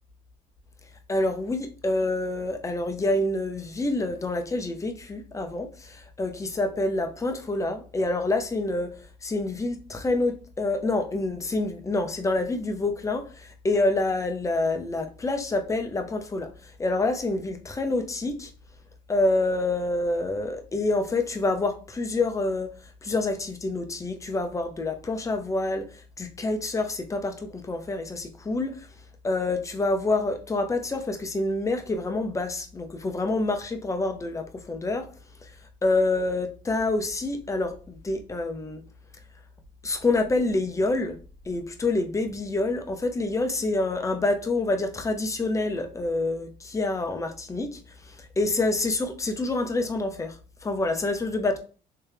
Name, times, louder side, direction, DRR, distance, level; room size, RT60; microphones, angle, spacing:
voice 1, 1.1-18.5 19.1-22.7 23.0-28.9 29.2-35.1 35.4-35.5 35.8-38.8 39.8-41.2 41.4-51.6, left 2 dB, 20° left, 0.7 m, -27 dB
3.3 x 3.2 x 3.3 m
cardioid pair, 110°, 17 cm